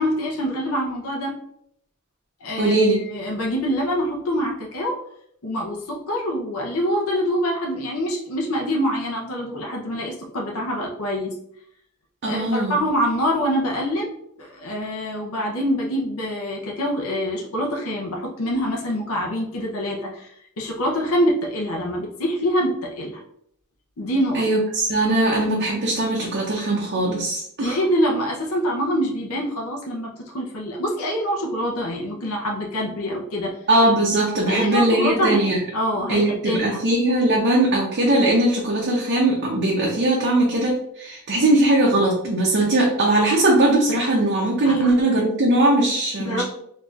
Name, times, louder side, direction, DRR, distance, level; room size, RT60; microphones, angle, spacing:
voice 1, 0.0-1.3 2.4-5.0 5.4-11.3 12.2-14.1 14.4-20.3 20.6-23.2 24.0-24.4 27.6-33.6 34.5-36.9 44.6-44.9 46.2-46.4, equal, 70° left, -1 dB, 0.7 m, -25 dB
voice 2, 2.6-3.0 12.2-12.8 24.3-27.8 33.7-35.6 36.1-46.4, right 1 dB, 50° right, -3 dB, 0.6 m, -20 dB
3.9 x 2.7 x 2.4 m, 0.70 s
head